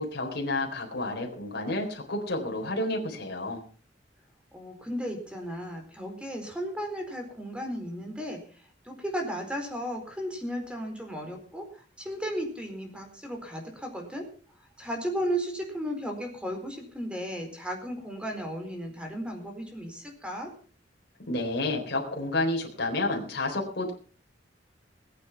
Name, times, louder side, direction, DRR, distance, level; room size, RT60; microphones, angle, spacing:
voice 1, 0.0-3.6 21.3-23.9, left 2 dB, 65° left, 1 dB, 4.0 m, -30 dB
voice 2, 4.5-8.4 8.8-14.3 14.8-20.5, equal, 5° right, 3 dB, 4.3 m, -35 dB
20.5 x 8.8 x 5.9 m, 0.41 s
head